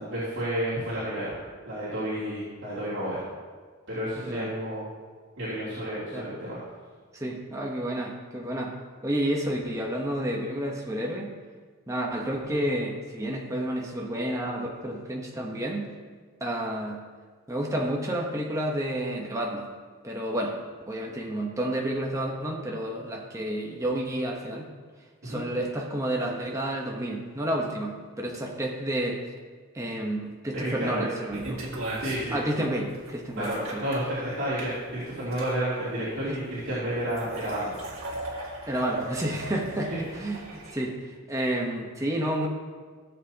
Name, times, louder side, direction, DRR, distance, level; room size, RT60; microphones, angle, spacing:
voice 1, 0.0-1.3 1.6-3.2 3.9-4.8 5.4-6.6 25.2-25.4 30.5-31.1 32.0-32.3 33.4-37.8 39.9-40.0, right 1 dB, 55° right, -12 dB, 3.3 m, -31 dB
voice 2, 7.1-8.7 9.0-11.3 11.9-15.9 16.4-17.0 17.5-19.7 20.0-20.6 20.9-24.7 25.2-29.2 29.7-31.7 32.3-33.8 38.7-39.9 40.2-42.5, right 1 dB, 15° right, -1 dB, 1.1 m, -30 dB
sound 1, 31.3-40.7, right 1 dB, 80° right, 2.2 m, -38 dB
16.5 x 7.5 x 2.9 m, 1.5 s
head